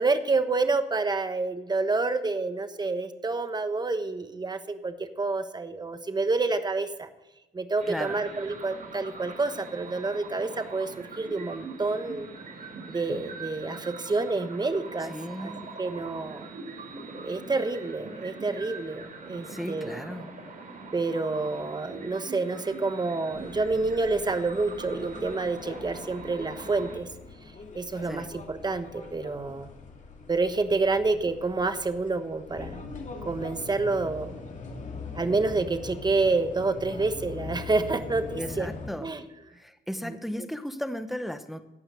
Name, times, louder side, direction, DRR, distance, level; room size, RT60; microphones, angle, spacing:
voice 1, 0.0-7.1 7.5-12.3 12.9-15.1 15.4-15.5 15.8-16.5 17.2-20.0 20.9-27.1 27.7-29.7 30.3-32.8 33.2-34.4 35.1-38.7 39.0-39.2 40.0-40.2, right 3 dB, 20° right, 9 dB, 1.2 m, -28 dB
sound 1, 7.8-26.9, right 3 dB, 45° right, 4.9 m, -42 dB
voice 2, 7.9-8.2 15.0-15.7 19.5-20.3 28.0-28.3 38.3-39.1 39.5-41.6, equal, ahead, 9 dB, 0.9 m, -36 dB
sound 2, 23.3-38.9, left 3 dB, 40° left, 2.3 m, -42 dB
16.0 x 5.7 x 6.8 m, 1.0 s
cardioid pair, 90°, 20 cm